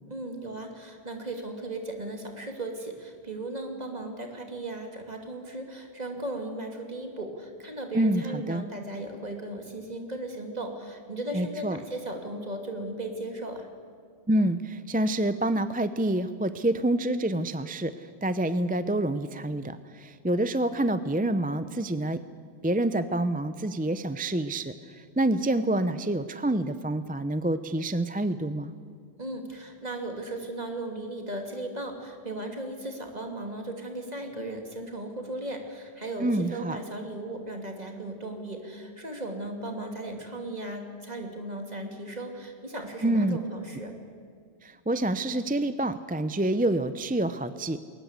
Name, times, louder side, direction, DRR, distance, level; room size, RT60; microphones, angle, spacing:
voice 1, 0.1-13.7 29.2-44.0, right 1 dB, 40° right, 4 dB, 2.8 m, -36 dB
voice 2, 7.9-8.6 11.3-11.8 14.3-17.9 18.2-22.2 22.6-28.7 36.2-36.8 43.0-43.4 44.6-47.8, right 1 dB, 10° right, 12 dB, 0.5 m, -27 dB
21.5 x 19.0 x 8.1 m, 2.1 s
omnidirectional pair, 1.1 m